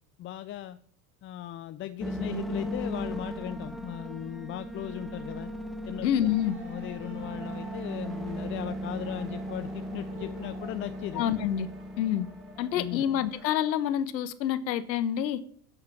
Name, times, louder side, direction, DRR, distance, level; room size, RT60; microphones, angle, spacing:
voice 1, 0.2-0.8 1.2-5.5 5.9-6.3 6.6-11.4 12.7-13.0, left 13 dB, 25° left, 11 dB, 0.4 m, -37 dB
sound 1, 2.0-13.5, equal, ahead, 0.9 m, -37 dB
voice 2, 6.0-6.5 11.2-11.7 12.0-12.3 12.6-15.4, left 10 dB, 85° left, 14 dB, 1.1 m, -27 dB
sound 2, 6.1-13.8, right 5 dB, 45° right, 3.2 m, -50 dB
10.5 x 6.8 x 6.8 m, 0.62 s
hypercardioid pair, 95°, 50 cm